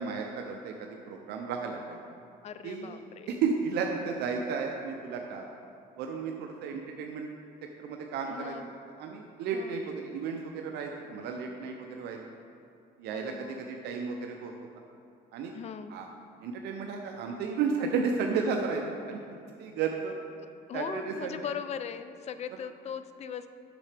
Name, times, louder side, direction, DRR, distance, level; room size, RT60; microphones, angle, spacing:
voice 1, 0.0-2.0 2.6-2.9 3.3-5.5 6.0-7.3 7.8-8.7 9.0-12.2 13.0-14.5 15.3-15.5 15.9-16.1 16.4-19.2 19.6-20.1 20.7-21.3, right 5 dB, 80° right, 2 dB, 0.6 m, -33 dB
voice 2, 2.4-3.4 7.4-7.5 8.3-8.7 9.5-9.8 13.1-13.7 15.5-16.0 20.7-23.5, left 7 dB, 40° left, 11 dB, 0.4 m, -39 dB
8.7 x 6.6 x 3.4 m, 2.5 s
cardioid pair, 110°, 17 cm